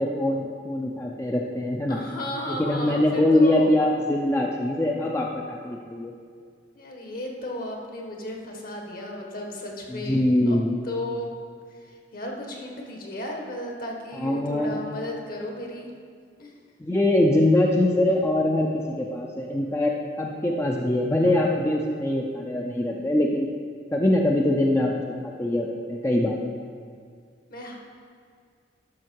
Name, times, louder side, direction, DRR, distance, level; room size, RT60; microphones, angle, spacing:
voice 1, 0.0-2.0 2.5-6.1 9.9-10.8 14.1-14.8 16.8-19.9 20.2-23.5 23.9-26.4, left 1 dB, 15° left, -1 dB, 0.6 m, -23 dB
voice 2, 1.9-3.7 6.7-10.6 10.8-11.3 11.9-15.9 16.4-16.5 27.5-27.8, left 1 dB, 55° left, 0 dB, 1.5 m, -34 dB
12.5 x 6.2 x 4.7 m, 2.1 s
head